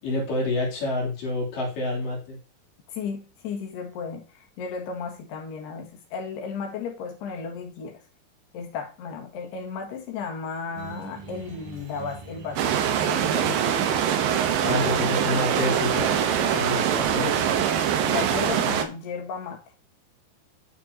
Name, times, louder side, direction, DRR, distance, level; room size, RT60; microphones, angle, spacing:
voice 1, 0.0-2.4 14.6-17.6, left 2 dB, 60° left, -3 dB, 4.4 m, -28 dB
voice 2, 2.9-8.0 8.5-13.7 14.6-15.1 18.0-19.6, left 5 dB, 85° left, 3 dB, 3.8 m, -34 dB
sound 1, 10.8-18.3, right 5 dB, 55° right, 3.1 m, -44 dB
sound 2, 12.6-18.8, right 9 dB, 75° right, 2.4 m, -23 dB
11.5 x 6.0 x 2.7 m, 0.31 s
omnidirectional pair, 4.6 m